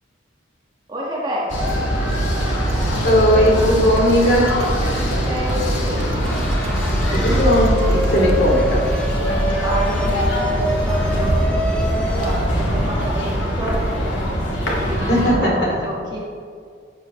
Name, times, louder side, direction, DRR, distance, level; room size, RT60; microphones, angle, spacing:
voice 1, 0.9-1.7 5.0-6.1 9.6-14.1 14.9-16.2, equal, 20° right, -5 dB, 1.8 m, -29 dB
sound 1, 1.5-15.3, equal, 80° left, 2.2 m, -21 dB
sound 2, 2.6-8.4, right 3 dB, 85° right, 0.5 m, -32 dB
voice 2, 3.0-4.6 7.1-8.9 14.9-15.8, equal, 55° left, -3 dB, 2.7 m, -17 dB
sound 3, 6.2-12.4, right 2 dB, 5° left, 1.0 m, -27 dB
13.5 x 7.6 x 3.2 m, 2.1 s
head